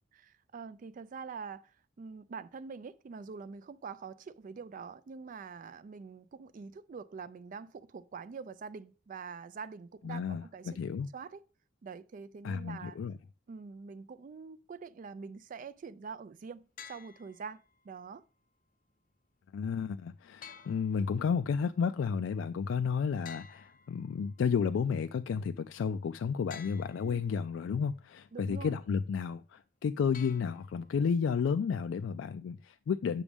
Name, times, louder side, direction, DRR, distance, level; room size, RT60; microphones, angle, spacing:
voice 1, 0.1-10.8 11.1-11.4 11.8-13.0 13.5-18.2 27.0-27.3 28.3-28.8, right 5 dB, 45° right, 0.3 m, -45 dB
voice 2, 10.0-11.1 12.4-13.1 19.5-33.2, left 6 dB, 80° left, 0.3 m, -32 dB
sound 1, 16.8-17.8 20.4-21.5 23.2-24.5 26.5-27.5 30.1-31.1, left 7 dB, 45° left, 0.7 m, -52 dB
8.3 x 6.1 x 3.5 m
head